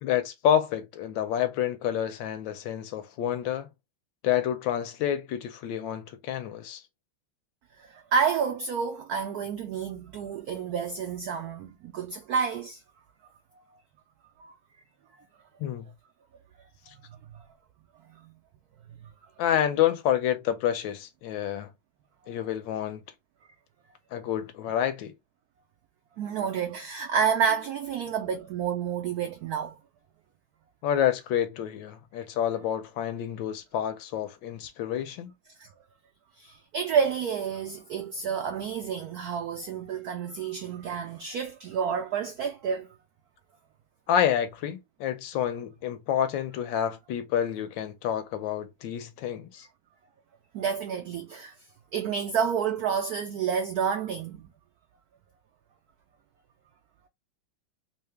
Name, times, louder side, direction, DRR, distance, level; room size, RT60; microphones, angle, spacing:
voice 1, 0.0-3.7 4.2-6.8 15.6-15.9 19.4-21.7 22.3-23.0 24.1-25.1 30.8-35.3 44.1-49.7, left 10 dB, 75° left, 1.3 m, -28 dB
voice 2, 7.8-12.8 14.4-14.5 17.3-17.5 18.1-18.3 19.0-19.1 22.2-22.4 26.2-29.8 35.6-35.7 36.4-42.9 50.5-51.5 51.9-54.5, right 7 dB, 80° right, 0.8 m, -29 dB
3.3 x 2.8 x 3.3 m
omnidirectional pair, 2.2 m